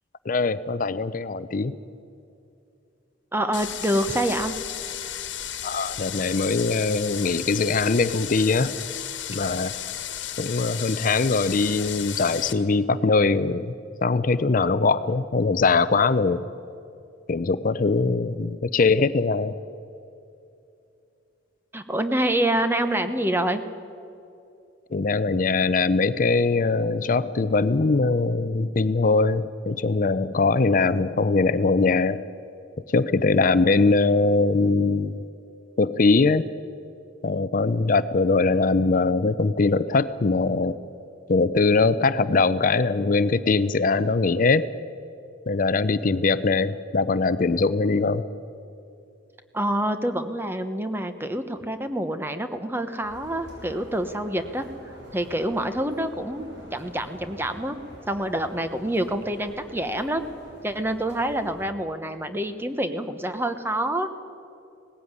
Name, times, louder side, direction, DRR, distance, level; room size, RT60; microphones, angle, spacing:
voice 1, 0.3-1.7 5.6-8.8 9.3-9.7 10.4-13.7 14.0-16.5 17.3-19.6 24.9-32.2 32.9-35.2 35.8-36.5 37.2-40.7 41.3-44.7 45.5-48.3, left 3 dB, 45° left, 15 dB, 0.5 m, -22 dB
voice 2, 3.3-4.5 21.7-23.6 49.5-54.7 55.1-57.8 58.1-60.2 60.6-64.1, right 1 dB, 10° right, 9 dB, 1.0 m, -27 dB
sound 1, 3.5-12.5, left 11 dB, 80° left, 1.4 m, -34 dB
sound 2, 53.0-61.7, equal, 65° right, 6.6 m, -46 dB
18.5 x 15.5 x 9.5 m, 2.6 s
head